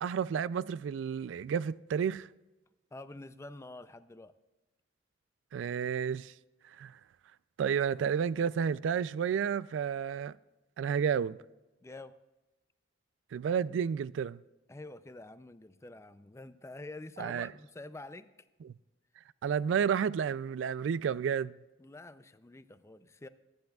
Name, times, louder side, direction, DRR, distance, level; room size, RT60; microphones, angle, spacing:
voice 1, 0.0-2.3 5.5-6.3 6.8-6.9 7.6-10.4 10.8-11.4 13.3-14.4 17.2-17.5 19.4-21.6, right 7 dB, 80° right, 0.3 m, -31 dB
voice 2, 2.9-4.3 11.8-12.2 14.7-18.3 21.8-23.3, left 2 dB, 15° left, 0.4 m, -47 dB
23.5 x 10.0 x 2.3 m
head